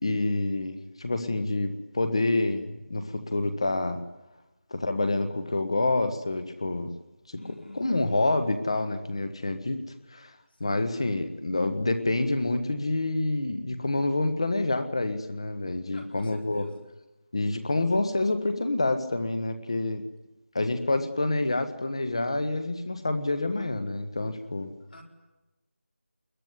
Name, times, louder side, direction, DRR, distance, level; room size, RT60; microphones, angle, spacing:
voice 1, 0.0-4.0 4.7-6.9 7.3-7.4 7.7-9.8 10.1-10.3 10.6-16.7 17.3-20.0 20.5-24.7, left 2 dB, 25° left, 10 dB, 1.4 m, -27 dB
voice 2, 7.4-7.8 10.6-10.8 15.9-16.7 24.9-25.0, left 1 dB, 50° left, 2 dB, 4.9 m, -47 dB
28.0 x 22.0 x 9.7 m, 1.0 s
figure-of-eight pair, 180°, 7 cm